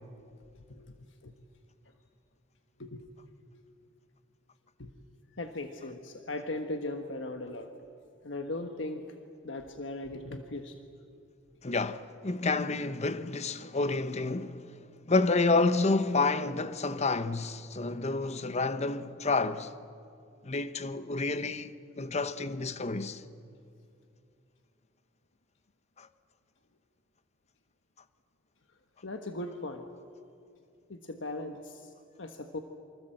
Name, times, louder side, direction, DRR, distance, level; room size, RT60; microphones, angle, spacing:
voice 1, 0.2-0.9 1.2-1.3 2.8-3.1 4.8-4.9 5.3-7.9 8.2-9.2 9.4-10.8 29.0-29.9 30.9-32.6, left 2 dB, 70° left, 1.4 m, -39 dB
voice 2, 11.6-19.8 20.4-23.2 26.0-26.1, left 3 dB, 35° left, 0.9 m, -29 dB
27.5 x 25.0 x 7.8 m
head